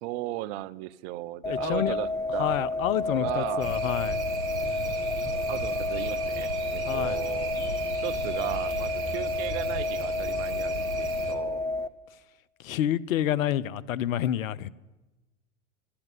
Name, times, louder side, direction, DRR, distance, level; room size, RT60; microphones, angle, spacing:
voice 1, 0.0-2.8 3.0-3.7 5.5-7.5 8.0-11.6, right 16 dB, 55° right, 0.6 m, -36 dB
sound 1, 1.4-11.9, left 2 dB, 10° left, 0.4 m, -30 dB
voice 2, 1.5-2.0 2.4-4.2 6.9-7.2 12.6-14.7, left 11 dB, 75° left, 0.7 m, -28 dB
sound 2, 3.2-11.6, left 3 dB, 55° left, 5.1 m, -53 dB
sound 3, 3.6-11.3, right 4 dB, 80° right, 1.6 m, -36 dB
12.0 x 8.7 x 9.3 m
hypercardioid pair, 90°, 41 cm